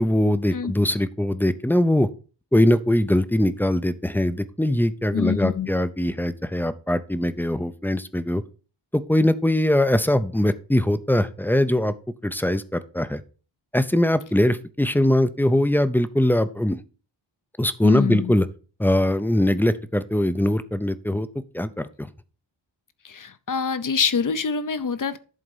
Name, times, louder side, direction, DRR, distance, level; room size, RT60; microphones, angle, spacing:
voice 1, 0.0-2.1 2.5-8.4 8.9-11.9 12.2-13.2 13.7-16.8 17.6-18.5 18.8-21.3 21.5-22.1, left 1 dB, 5° left, 13 dB, 0.5 m, -21 dB
voice 2, 5.1-5.7 17.8-18.3 23.0-25.2, left 6 dB, 45° left, 13 dB, 0.7 m, -25 dB
11.0 x 3.9 x 5.4 m, 0.37 s
wide cardioid pair, 100°, 44 cm